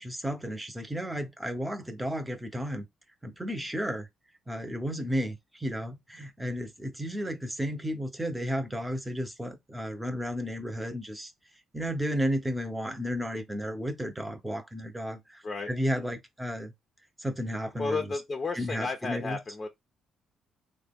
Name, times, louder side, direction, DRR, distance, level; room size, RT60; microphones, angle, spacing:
voice 1, 0.0-2.9 3.2-4.1 4.5-11.3 11.7-16.7 17.2-18.2 18.5-19.4, equal, 10° right, 0.8 m, -33 dB
voice 2, 17.8-19.7, left 3 dB, 35° left, 0.6 m, -32 dB
3.3 x 2.2 x 3.5 m
cardioid pair, 90°, 0 cm